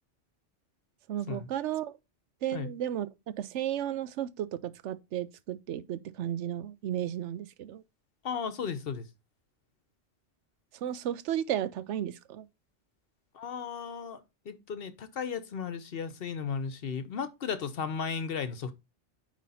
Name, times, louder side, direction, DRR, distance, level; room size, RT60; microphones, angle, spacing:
voice 1, 1.1-2.0 2.4-3.1 3.4-7.8 10.8-12.5, right 11 dB, 80° right, 0.9 m, -33 dB
voice 2, 8.2-9.1 13.3-14.2 14.5-18.7, left 6 dB, 60° left, 0.9 m, -35 dB
9.4 x 3.2 x 4.1 m
omnidirectional pair, 1.2 m